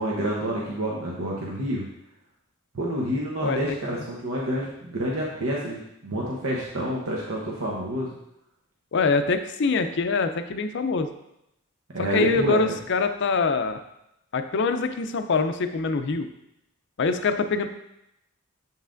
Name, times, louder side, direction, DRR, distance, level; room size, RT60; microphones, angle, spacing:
voice 1, 0.0-1.8 2.7-8.2 11.9-12.6, right 1 dB, 75° right, -4 dB, 0.9 m, -28 dB
voice 2, 8.9-11.1 12.0-13.8 14.3-16.3 17.0-17.7, left 4 dB, 55° left, 9 dB, 0.5 m, -24 dB
7.2 x 5.5 x 2.5 m, 0.83 s
head